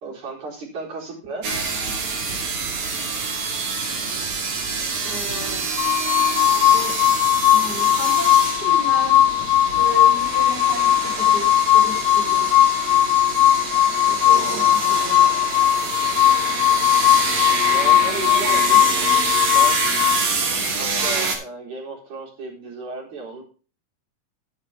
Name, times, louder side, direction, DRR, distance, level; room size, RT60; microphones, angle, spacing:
voice 1, 0.0-1.5 14.3-14.7 17.7-18.9 19.5-19.8 20.8-23.4, right 3 dB, 55° right, -3 dB, 5.5 m, -34 dB
sound 1, 1.4-21.4, right 4 dB, 75° right, 4.4 m, -26 dB
voice 2, 5.0-5.6 6.7-6.9 7.5-8.3 8.6-9.2 9.7-12.5 13.9-15.3 18.4-19.1 19.8-20.1, equal, 25° left, 1 dB, 3.4 m, -34 dB
sound 2, 5.8-20.2, left 12 dB, 70° left, 2.2 m, -18 dB
12.0 x 9.9 x 3.5 m, 0.36 s
omnidirectional pair, 4.1 m